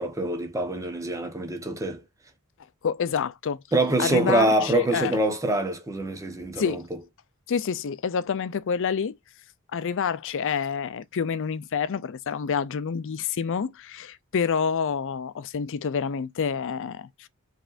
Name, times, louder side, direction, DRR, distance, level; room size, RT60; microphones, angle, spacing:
voice 1, 0.0-2.0 3.7-6.8, right 2 dB, 15° right, 0.9 m, -25 dB
voice 2, 2.8-3.6 4.0-5.2 6.6-6.8 7.5-9.2 9.7-17.3, left 6 dB, 60° left, 0.5 m, -28 dB
5.1 x 3.2 x 2.5 m
head